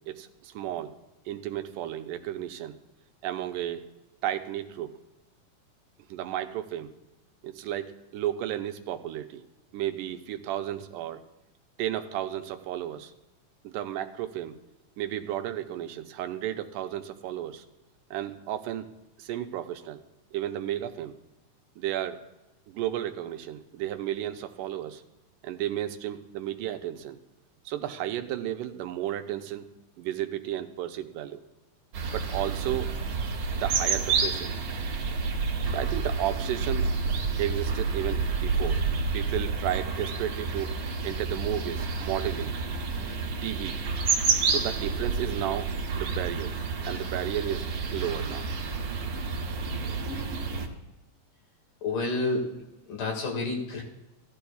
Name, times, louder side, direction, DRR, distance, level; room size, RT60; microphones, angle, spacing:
voice 1, 0.1-0.9 1.3-2.8 3.2-3.9 4.2-4.9 6.1-6.9 7.4-9.4 9.7-11.2 11.8-13.1 13.6-14.6 15.0-17.6 18.1-18.9 19.2-20.0 20.3-21.1 21.8-22.2 22.7-25.0 25.4-27.2 27.7-29.7 30.0-31.4 32.1-32.9 33.6-34.5 35.7-36.9 37.4-38.8 39.1-40.8 41.0-42.5 43.4-43.8 44.5-46.5 46.8-48.5, right 12 dB, 85° right, 8 dB, 2.2 m, -33 dB
sound 1, 31.9-50.7, right 4 dB, 60° right, 1.9 m, -29 dB
voice 2, 51.8-52.6 52.9-53.8, left 3 dB, 85° left, 0 dB, 3.6 m, -29 dB
15.5 x 12.0 x 2.3 m, 1.0 s
omnidirectional pair, 3.7 m